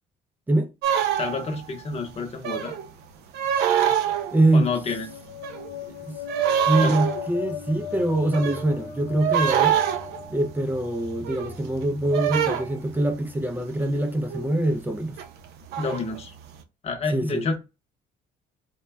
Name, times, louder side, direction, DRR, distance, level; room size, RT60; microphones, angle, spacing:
sound 1, 0.8-1.7 2.4-2.9 3.3-4.6 4.9-5.9 6.3-13.4 14.3-14.6 14.9-16.4, right 9 dB, 75° right, 0.5 m, -26 dB
voice 1, 1.1-2.8 4.5-5.1 6.8-6.9 15.8-16.3 16.8-17.6, left 4 dB, 40° left, 0.8 m, -29 dB
sound 2, 4.2-11.1, left 9 dB, 80° left, 0.4 m, -39 dB
voice 2, 4.3-4.7 5.9-6.2 6.6-9.8 10.3-15.2 17.1-17.5, right 1 dB, 10° right, 0.3 m, -24 dB
2.2 x 2.1 x 3.3 m
cardioid pair, 110°, 17 cm